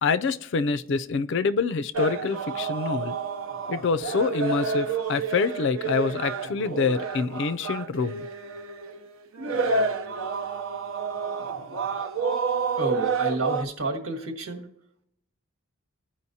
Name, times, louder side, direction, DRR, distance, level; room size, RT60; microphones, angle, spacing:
voice 1, 0.0-3.2 3.7-8.3, left 4 dB, 55° left, 14 dB, 0.4 m, -26 dB
sound 1, 1.9-13.6, right 5 dB, 70° right, 0.7 m, -29 dB
voice 2, 12.8-14.7, right 2 dB, 90° right, 3 dB, 1.5 m, -30 dB
15.0 x 5.1 x 2.7 m, 0.76 s
head